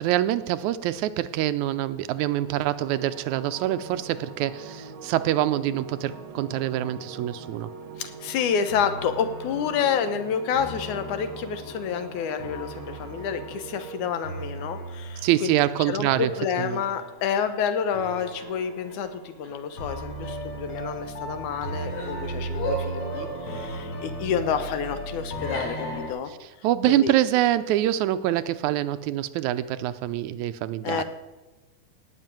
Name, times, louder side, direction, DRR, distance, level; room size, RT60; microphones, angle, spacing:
voice 1, 0.0-7.7 15.2-16.3 16.6-16.8 26.6-31.0, right 13 dB, 80° right, 13 dB, 2.0 m, -25 dB
sound 1, 2.2-14.1, right 4 dB, 60° right, 1.5 m, -42 dB
voice 2, 8.0-15.5 15.9-26.3 26.9-27.1 30.8-31.0, left 7 dB, 80° left, 9 dB, 2.5 m, -29 dB
sound 2, 8.7-26.1, right 1 dB, 50° left, 4.0 m, -36 dB
17.0 x 6.2 x 9.1 m, 1.2 s
omnidirectional pair, 3.4 m